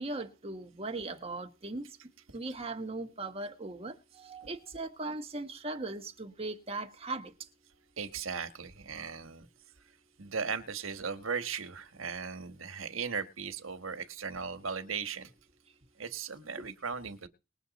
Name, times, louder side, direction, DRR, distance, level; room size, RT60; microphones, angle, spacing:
voice 1, 0.0-2.0 2.3-7.5, right 2 dB, 30° right, 1.4 m, -39 dB
voice 2, 8.0-9.5 10.2-15.3 16.0-17.3, right 5 dB, 75° right, 1.5 m, -37 dB
21.0 x 7.2 x 4.1 m
head